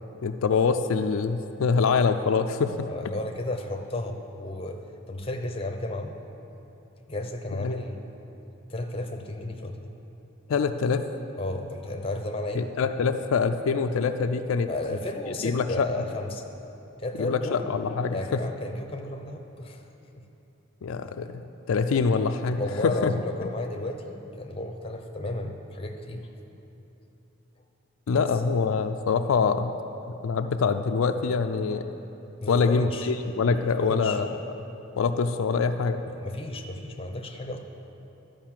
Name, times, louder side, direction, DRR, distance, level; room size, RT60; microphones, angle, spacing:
voice 1, 0.2-2.9 7.5-7.8 10.5-11.0 12.5-14.7 15.4-15.9 17.2-18.4 20.8-21.4 21.7-23.1 28.1-29.7 30.2-31.9 32.5-34.4 35.0-36.0, left 5 dB, 80° left, 7 dB, 0.4 m, -25 dB
voice 2, 2.8-4.8 5.1-6.1 7.1-8.0 8.7-9.8 11.4-12.7 14.7-16.4 17.0-17.7 18.1-19.8 22.6-26.3 28.2-28.3 32.4-33.1 33.8-34.2 36.1-37.6, left 2 dB, 25° left, 4 dB, 0.7 m, -33 dB
12.0 x 5.2 x 7.4 m, 3.0 s
head